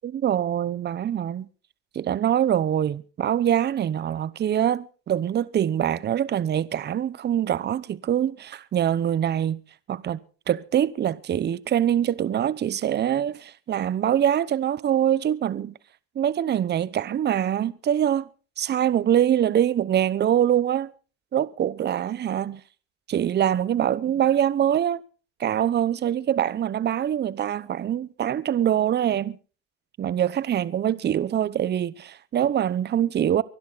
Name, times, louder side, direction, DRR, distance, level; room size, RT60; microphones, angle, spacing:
voice 1, 0.0-1.5 1.9-9.6 9.9-10.2 10.5-15.8 16.1-18.3 18.6-20.9 21.3-22.6 23.1-25.0 25.4-29.4 30.0-33.4, right 10 dB, 30° right, 0.9 m, -24 dB
24.0 x 12.0 x 4.1 m
supercardioid pair, 105°, 33 cm